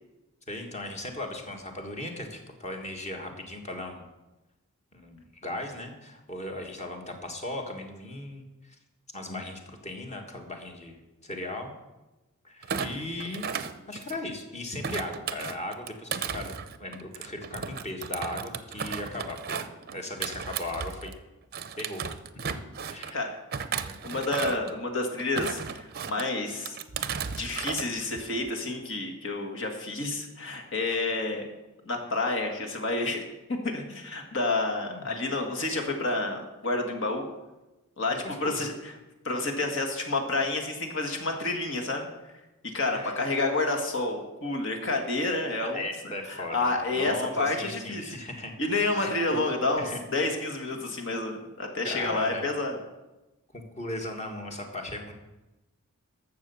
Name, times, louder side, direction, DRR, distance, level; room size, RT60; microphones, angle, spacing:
voice 1, 0.5-4.1 4.9-8.8 9.1-11.7 12.4-13.5 13.9-21.1 21.8-22.0 22.6-23.4 23.7-24.0 34.9-35.1 38.1-38.7 42.9-43.1 45.6-48.5 48.9-49.4 49.8-50.0 51.8-52.5 53.5-55.1, left 1 dB, 30° left, 3 dB, 1.7 m, -37 dB
Thump thud, 12.6-14.4 14.8-21.2 21.5-23.1 23.5-24.7 25.2-26.3 26.7-27.9 28.2-28.5, right 6 dB, 45° right, 0.6 m, -35 dB
voice 2, 24.0-26.7 27.4-31.5 31.8-33.2 33.5-37.3 38.0-38.9 39.2-42.1 42.7-45.8 46.3-48.2 48.6-52.8, left 2 dB, 60° left, 2 dB, 1.8 m, -29 dB
12.0 x 7.1 x 7.0 m, 1.0 s
head